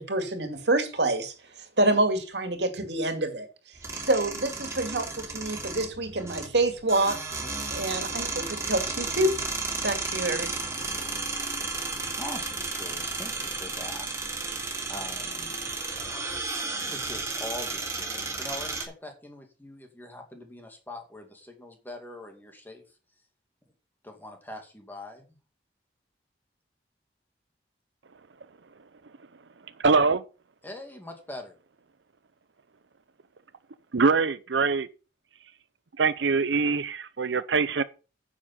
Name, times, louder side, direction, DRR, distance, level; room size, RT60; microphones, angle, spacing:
voice 1, 0.0-1.3 1.8-3.5 3.9-7.2 7.7-9.4 9.8-10.6, right 2 dB, 70° right, 2.4 m, -27 dB
sound 1, 3.8-18.8, right 3 dB, 15° right, 2.9 m, -33 dB
voice 2, 12.1-15.6 16.9-22.8 24.0-25.2 30.6-31.6, left 1 dB, 10° left, 2.4 m, -42 dB
voice 3, 29.8-30.2 33.9-34.9 36.0-37.8, right 4 dB, 90° right, 0.7 m, -23 dB
9.9 x 7.2 x 5.6 m
head